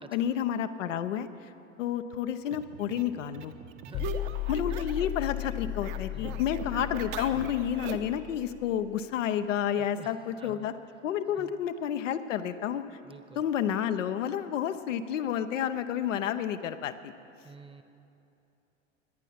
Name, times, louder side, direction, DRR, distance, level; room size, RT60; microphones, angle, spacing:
voice 1, 0.1-1.3 1.8-3.5 4.5-10.7 11.0-12.8 13.4-17.1, left 9 dB, 75° left, 8 dB, 0.8 m, -30 dB
sound 1, 2.5-5.2 5.4-8.2, right 7 dB, 50° right, 1.1 m, -41 dB
sound 2, 3.9-9.0, left 14 dB, 40° left, 0.5 m, -36 dB
voice 2, 3.9-4.8 6.1-6.5 9.8-10.7 11.4-11.5 13.0-13.4 17.4-17.8, right 3 dB, 15° right, 8 dB, 1.0 m, -50 dB
18.5 x 10.5 x 5.8 m, 2.8 s
hypercardioid pair, 85°, 38 cm